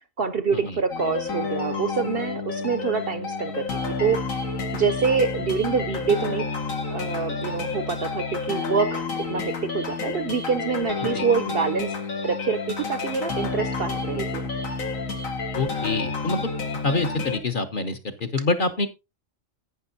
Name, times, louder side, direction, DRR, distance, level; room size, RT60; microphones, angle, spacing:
voice 1, 0.2-4.2 4.7-6.5 6.9-11.9 12.2-14.5, right 5 dB, 55° right, 11 dB, 0.7 m, -26 dB
sound 1, 0.9-17.4, left 4 dB, 80° left, 2.1 m, -30 dB
voice 2, 15.5-16.5 16.8-18.9, left 3 dB, 40° left, 7 dB, 1.1 m, -26 dB
11.5 x 9.0 x 2.7 m, 0.24 s
omnidirectional pair, 1.4 m